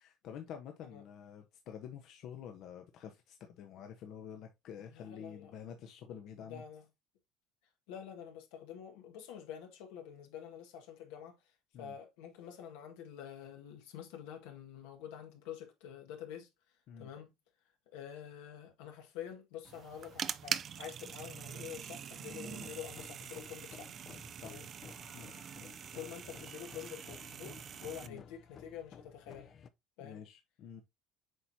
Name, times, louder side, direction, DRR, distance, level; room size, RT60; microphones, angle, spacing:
voice 1, 0.0-6.6 11.7-11.9 16.9-17.1 22.4-22.7 24.4-24.6 25.1-25.3 28.0-28.2 30.0-30.8, left 8 dB, 65° left, 1.0 m, -48 dB
voice 2, 4.8-5.5 6.4-6.8 7.9-11.4 11.8-16.5 17.0-17.3 17.9-23.9 24.4-24.7 25.9-29.5 30.0-30.2, left 9 dB, 85° left, 1.7 m, -47 dB
sound 1, 19.6-28.1, right 8 dB, 50° right, 0.5 m, -43 dB
sound 2, 22.3-29.7, left 6 dB, 50° left, 0.7 m, -55 dB
7.8 x 4.5 x 2.8 m
supercardioid pair, 90°, 0 cm